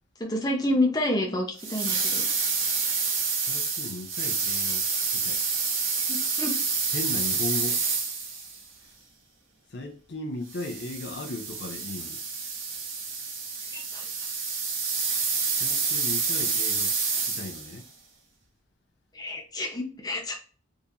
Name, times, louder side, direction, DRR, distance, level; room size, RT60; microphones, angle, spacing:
voice 1, 0.2-2.3 6.1-6.6 13.7-14.1 19.1-20.4, left 1 dB, 20° left, 0.8 m, -28 dB
sound 1, 1.6-8.6 10.5-17.8, right 4 dB, 75° right, 1.0 m, -28 dB
voice 2, 3.3-4.8 5.1-5.4 6.9-7.9 9.7-12.2 15.5-17.9, left 2 dB, 55° left, 0.6 m, -37 dB
3.5 x 2.7 x 2.8 m
head